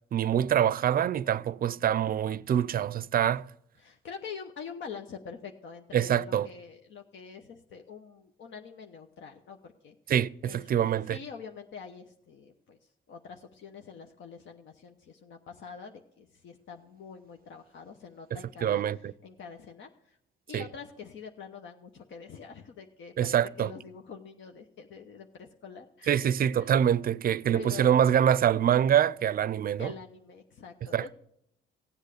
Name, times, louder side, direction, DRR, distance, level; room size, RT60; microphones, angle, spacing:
voice 1, 0.1-3.5 5.9-6.5 10.1-11.2 18.3-19.1 20.5-20.7 23.2-23.7 26.1-29.9 30.9-31.1, right 9 dB, 50° right, 0.5 m, -25 dB
voice 2, 3.8-9.9 10.4-18.8 19.2-20.2 20.5-26.3 26.6-26.7 27.5-28.1 29.8-31.1, left 6 dB, 70° left, 1.0 m, -45 dB
16.5 x 8.2 x 6.6 m
cardioid pair, 90°, 20 cm